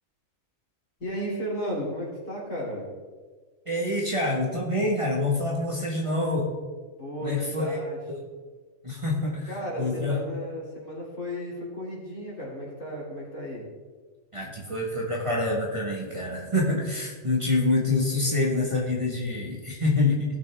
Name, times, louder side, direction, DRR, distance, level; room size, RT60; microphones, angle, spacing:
voice 1, 1.0-2.9 7.0-8.0 9.5-13.7, equal, 65° left, -5 dB, 3.4 m, -34 dB
voice 2, 3.7-6.5 7.2-7.8 8.1-8.2 8.8-9.5 9.8-10.2 14.3-20.4, left 2 dB, 25° right, -4 dB, 1.6 m, -26 dB
16.5 x 6.3 x 3.5 m, 1.4 s
omnidirectional pair, 1.4 m